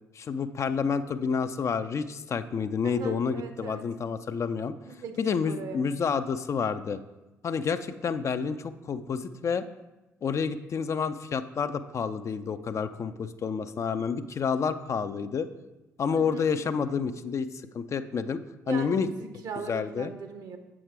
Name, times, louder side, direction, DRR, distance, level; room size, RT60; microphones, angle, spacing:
voice 1, 0.2-4.7 5.2-7.0 7.4-9.7 10.2-15.5 16.0-17.5 17.7-19.1 19.7-20.1, left 6 dB, 40° left, 10 dB, 0.5 m, -29 dB
voice 2, 2.8-3.9 4.9-5.8 16.1-16.5 18.7-20.6, right 5 dB, 50° right, 7 dB, 1.0 m, -39 dB
7.9 x 6.2 x 4.6 m, 1.0 s
figure-of-eight pair, 45°, 8 cm